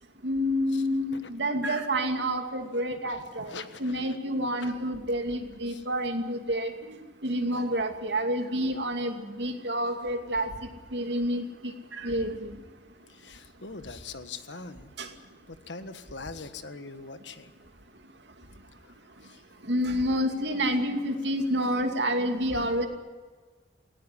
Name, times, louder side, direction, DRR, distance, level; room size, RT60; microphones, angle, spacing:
voice 1, 0.2-3.5 3.8-7.0 7.2-10.5 10.9-12.5 15.0-15.1 19.7-22.9, equal, 75° right, 5 dB, 2.5 m, -28 dB
voice 2, 3.0-4.1 4.6-4.7 5.7-5.8 13.2-14.9 15.5-17.5 19.2-19.3, left 4 dB, 80° left, 10 dB, 1.5 m, -42 dB
18.5 x 17.5 x 9.8 m, 1.4 s
head